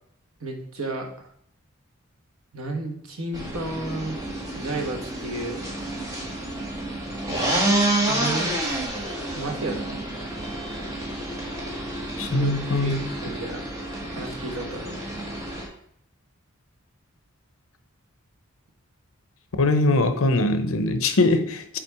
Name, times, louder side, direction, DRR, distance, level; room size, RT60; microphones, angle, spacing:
voice 1, 0.4-1.3 2.5-4.2 4.6-5.6 7.3-7.6 8.1-8.7 9.3-10.0 12.2-13.7 14.1-15.1, right 2 dB, 75° right, 3 dB, 1.3 m, -33 dB
sound 1, 3.3-15.7, right 1 dB, 15° right, 1.4 m, -29 dB
voice 2, 12.2-13.0 19.6-21.8, left 2 dB, 70° left, 9 dB, 0.7 m, -22 dB
5.8 x 4.4 x 4.7 m, 0.67 s
head